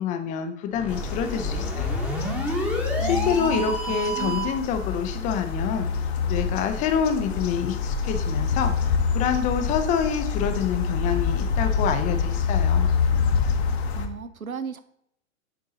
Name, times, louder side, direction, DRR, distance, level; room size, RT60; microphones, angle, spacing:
voice 1, 0.0-2.0 2.5-12.9, left 7 dB, 20° left, 0.5 m, -27 dB
sound 1, 0.7-4.6, right 1 dB, 5° right, 1.0 m, -30 dB
sound 2, 0.9-14.1, left 6 dB, 50° left, 0.9 m, -26 dB
voice 2, 3.0-3.6 3.9-4.4 13.9-14.8, right 6 dB, 85° right, 0.7 m, -35 dB
6.8 x 4.6 x 3.9 m
figure-of-eight pair, 105°, 41 cm